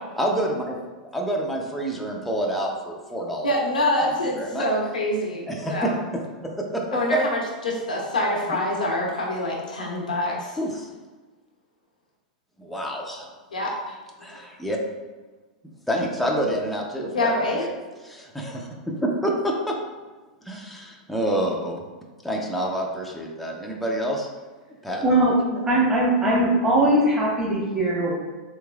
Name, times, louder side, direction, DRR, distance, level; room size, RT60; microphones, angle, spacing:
voice 1, 0.2-0.8 1.1-3.5 4.0-4.7 5.5-6.2 6.7-6.8 10.6-10.9 12.6-13.3 14.2-14.8 15.9-17.6 18.0-19.7 20.4-21.8 22.2-24.3 24.8-25.1, right 1 dB, ahead, -2 dB, 0.6 m, -28 dB
voice 2, 3.4-6.0 6.9-10.6 13.5-14.0 17.1-17.7, left 1 dB, 85° left, -2 dB, 0.7 m, -25 dB
voice 3, 25.0-28.1, right 1 dB, 15° right, -6 dB, 1.3 m, -20 dB
3.5 x 3.1 x 2.3 m, 1.3 s
hypercardioid pair, 100°, 4 cm